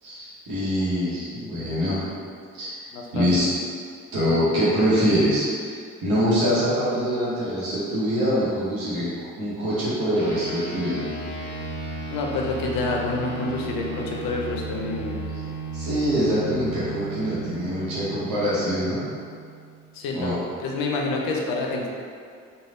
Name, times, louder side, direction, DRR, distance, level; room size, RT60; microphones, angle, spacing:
voice 1, 0.0-2.0 2.5-2.8 3.1-3.5 4.1-9.1 9.4-11.0 15.7-19.0 20.1-20.4, equal, 80° right, -10 dB, 0.9 m, -24 dB
voice 2, 2.9-3.3 12.1-15.2 19.9-21.9, left 3 dB, 85° left, -1 dB, 0.5 m, -28 dB
sound 1, 10.2-19.9, right 2 dB, 45° left, 0.9 m, -35 dB
3.2 x 2.3 x 2.5 m, 2.2 s
supercardioid pair, 45°, 34 cm